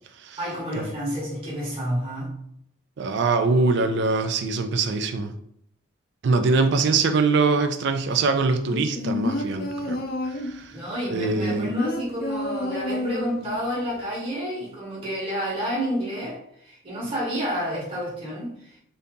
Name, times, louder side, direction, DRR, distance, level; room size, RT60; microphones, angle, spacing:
voice 1, 0.4-2.3 10.7-18.8, equal, 30° right, 1.2 m, -30 dB
voice 2, 3.0-5.3 6.2-10.0 10.3-10.7 11.1-11.7, right 4 dB, 55° right, 0.4 m, -23 dB
sound 1, 8.7-10.6 11.2-13.6 13.9-14.0, left 2 dB, 50° left, 0.5 m, -29 dB
2.7 x 2.7 x 3.5 m
head